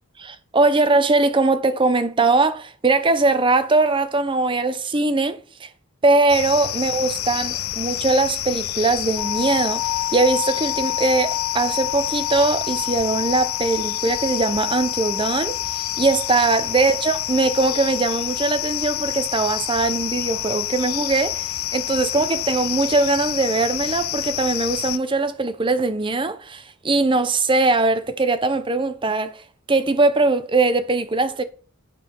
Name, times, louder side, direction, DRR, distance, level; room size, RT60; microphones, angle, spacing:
voice 1, 0.2-5.7 6.0-15.6 16.0-29.3 29.7-31.4, right 3 dB, 25° right, 0.6 m, -21 dB
sound 1, 6.3-25.0, left 14 dB, 70° left, 0.5 m, -28 dB
sound 2, 9.2-23.2, left 18 dB, 10° left, 1.8 m, -33 dB
8.5 x 4.9 x 5.2 m
head